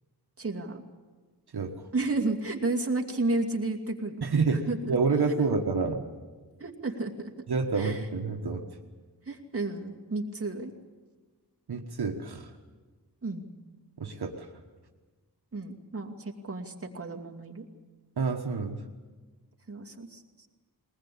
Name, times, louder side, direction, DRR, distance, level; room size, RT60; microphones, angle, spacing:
voice 1, 0.4-0.8 1.9-4.2 4.7-5.0 6.6-7.3 7.8-8.1 9.3-10.7 13.2-13.4 15.5-17.7 19.7-20.5, right 2 dB, 35° right, 0 dB, 2.5 m, -32 dB
voice 2, 1.5-1.9 4.2-6.0 7.5-8.6 11.7-12.5 14.0-14.5 18.2-18.8, right 4 dB, 75° right, 2 dB, 1.5 m, -28 dB
21.5 x 19.5 x 8.6 m, 1.3 s
wide cardioid pair, 95°, 39 cm